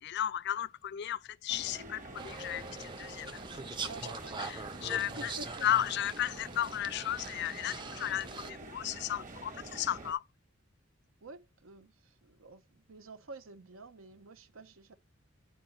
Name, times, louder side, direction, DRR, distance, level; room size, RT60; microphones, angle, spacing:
voice 1, 0.0-3.4 4.4-5.3 5.6-10.2, left 11 dB, 55° left, 0.4 m, -34 dB
sound 1, 1.5-10.1, right 2 dB, 40° right, 1.4 m, -47 dB
sound 2, 2.2-8.5, right 4 dB, 25° right, 0.6 m, -43 dB
voice 2, 3.8-4.4 5.0-5.7 11.2-14.9, right 3 dB, 80° right, 0.8 m, -49 dB
9.3 x 4.9 x 4.2 m
head